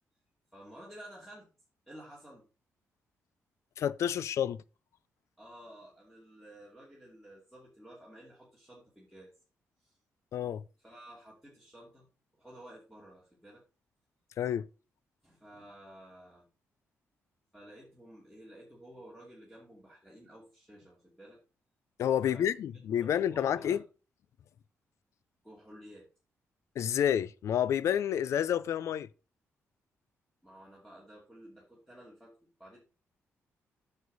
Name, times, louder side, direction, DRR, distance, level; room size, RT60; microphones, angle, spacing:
voice 1, 0.5-1.5 1.9-2.5 5.4-9.3 9.8-10.0 10.8-12.1 12.3-13.6 15.2-16.5 17.5-21.4 22.2-23.8 25.4-26.1 30.4-32.8, right 1 dB, ahead, 2.7 m, -53 dB
voice 2, 3.8-4.6 10.3-10.6 14.4-14.7 22.0-23.8 26.8-29.1, left 9 dB, 70° left, 0.5 m, -29 dB
9.4 x 6.6 x 4.1 m
wide cardioid pair, 145°, 5 cm